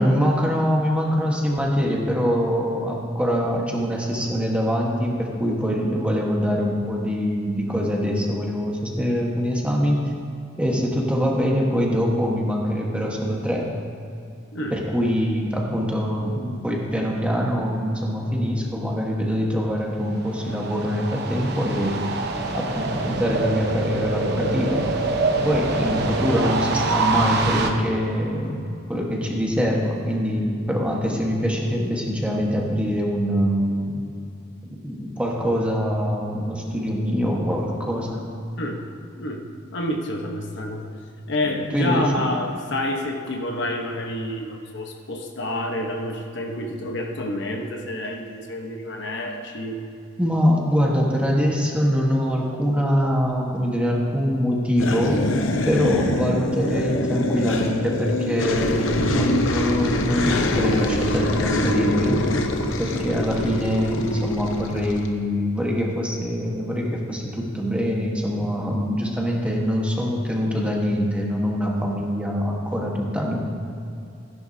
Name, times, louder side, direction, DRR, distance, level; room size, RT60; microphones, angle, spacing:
voice 1, 0.0-10.0 10.6-13.7 14.7-22.0 22.5-24.9 25.4-34.0 34.6-38.2 41.5-42.1 50.2-55.2 55.7-62.2 62.8-73.4, equal, 5° right, -2 dB, 1.4 m, -24 dB
sound 1, 20.0-27.7, right 3 dB, 60° right, 1.0 m, -25 dB
voice 2, 39.7-40.9 41.3-49.8 62.9-63.3, left 1 dB, 65° left, 2 dB, 1.1 m, -28 dB
sound 2, 54.8-65.1, left 1 dB, 85° left, 0.8 m, -24 dB
15.5 x 11.0 x 2.8 m, 2.6 s
head